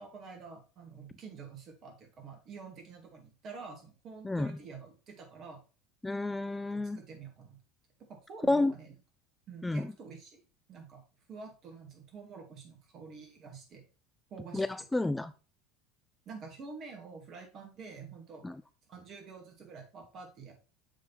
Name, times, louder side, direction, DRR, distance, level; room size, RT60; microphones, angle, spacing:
voice 1, 0.0-5.6 6.7-7.6 8.1-8.9 9.5-10.4 10.7-11.0 11.3-13.8 14.3-14.6 16.3-18.4 18.9-20.5, right 5 dB, 45° right, 3 dB, 2.3 m, -48 dB
voice 2, 4.2-4.6 6.0-7.0 8.5-8.7 9.6-9.9 14.5-15.3 18.4-18.6, left 2 dB, 10° left, 12 dB, 0.3 m, -30 dB
7.4 x 3.8 x 4.1 m, 0.33 s
hypercardioid pair, 80°, 0 cm